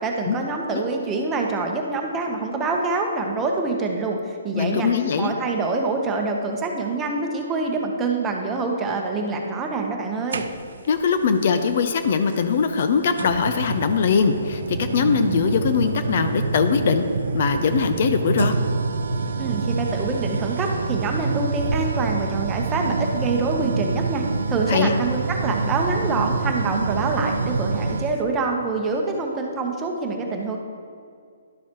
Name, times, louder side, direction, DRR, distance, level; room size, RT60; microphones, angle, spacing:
voice 1, 0.0-4.9 5.2-10.5 19.4-30.6, right 3 dB, 15° right, 1 dB, 1.0 m, -25 dB
voice 2, 4.5-5.3 10.9-17.1 17.3-18.5 24.7-24.9, left 6 dB, 55° left, 8 dB, 0.5 m, -21 dB
sound 1, 10.3-10.9 12.3-12.4 13.2-28.2, right 4 dB, 70° right, 0.5 m, -26 dB
11.5 x 7.0 x 3.0 m, 2.2 s
hypercardioid pair, 145°, 0 cm